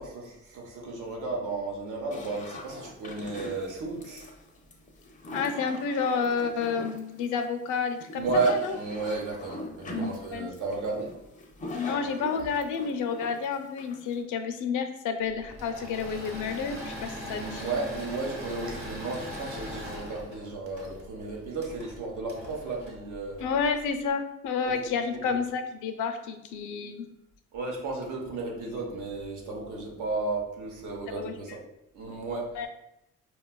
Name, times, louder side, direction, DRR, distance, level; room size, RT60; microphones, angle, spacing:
voice 1, 0.0-4.3 8.1-11.4 17.2-23.4 24.6-25.4 27.5-31.6 31.9-32.5, right 3 dB, 80° right, 0 dB, 0.9 m, -33 dB
sound 1, 2.1-14.2, left 1 dB, 25° left, 0.4 m, -40 dB
voice 2, 5.3-8.7 10.3-10.5 11.7-17.7 23.4-27.1 31.1-31.3 32.5-32.7, left 5 dB, 85° left, 7 dB, 0.5 m, -30 dB
Engine / Mechanisms, 15.4-23.8, equal, 45° right, 1.0 m, -40 dB
4.4 x 2.3 x 2.2 m, 0.82 s
cardioid pair, 135°, 30 cm